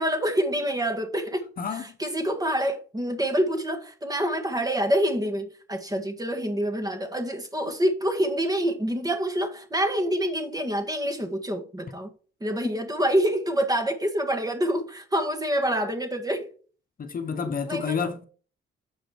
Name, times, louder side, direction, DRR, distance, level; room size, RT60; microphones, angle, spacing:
voice 1, 0.0-12.1 12.4-16.5 17.7-18.1, equal, 20° right, 1.7 m, -27 dB
voice 2, 17.0-18.3, left 6 dB, 45° left, 1.1 m, -29 dB
7.4 x 5.0 x 4.6 m
cardioid pair, 90°, 20 cm